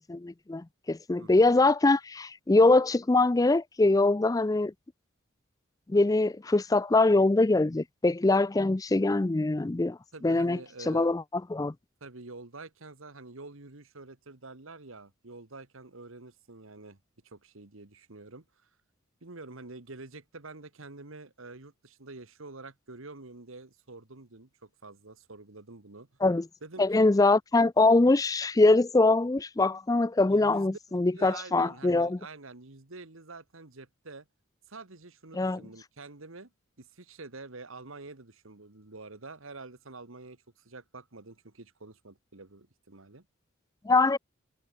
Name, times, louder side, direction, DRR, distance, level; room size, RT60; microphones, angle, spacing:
voice 1, 0.1-4.7 5.9-10.0 10.2-10.6 10.9-11.2 11.5-11.7 26.2-26.4 26.8-32.2 35.3-35.6 43.9-44.2, left 2 dB, 15° left, 0.4 m, -23 dB
voice 2, 1.2-1.5 10.1-11.1 12.0-17.0 17.2-18.5 19.2-26.1 26.6-27.1 30.2-34.3 34.7-36.5 36.8-43.3, right 3 dB, 75° right, 1.8 m, -47 dB
head